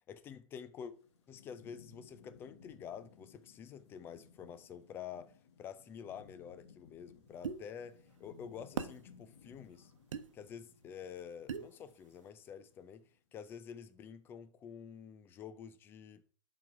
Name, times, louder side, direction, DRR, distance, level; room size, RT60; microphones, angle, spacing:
voice 1, 0.1-0.9 1.3-5.3 5.6-9.9 10.3-13.0 13.3-16.2, left 8 dB, 15° left, 0.4 m, -48 dB
Thunderstorm / Rain, 0.9-13.2, left 6 dB, 55° left, 1.6 m, -61 dB
sound 1, 7.4-7.6 8.8-9.0 10.1-10.3 11.5-11.7, right 7 dB, 65° right, 0.9 m, -38 dB
11.0 x 4.0 x 4.7 m
hypercardioid pair, 140°, 17 cm